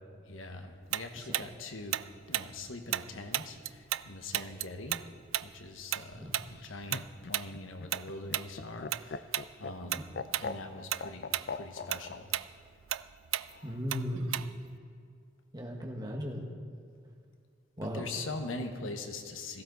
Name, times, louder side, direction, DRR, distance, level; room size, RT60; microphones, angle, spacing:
voice 1, 0.1-2.0 2.3-5.0 5.4-10.1 10.4-12.3 17.8-19.6, left 2 dB, 85° left, 6 dB, 1.2 m, -42 dB
Tick-tock, 0.9-4.1 4.3-9.0 9.3-9.5 9.9-10.5 10.8-14.7, right 13 dB, 85° right, 0.4 m, -34 dB
Laughter, 6.5-12.2 13.5-14.1, left 4 dB, 50° left, 0.4 m, -41 dB
voice 2, 13.6-14.3 15.5-16.5 17.8-18.1, equal, 20° right, 0 dB, 1.6 m, -36 dB
17.0 x 15.0 x 4.0 m, 2.3 s
head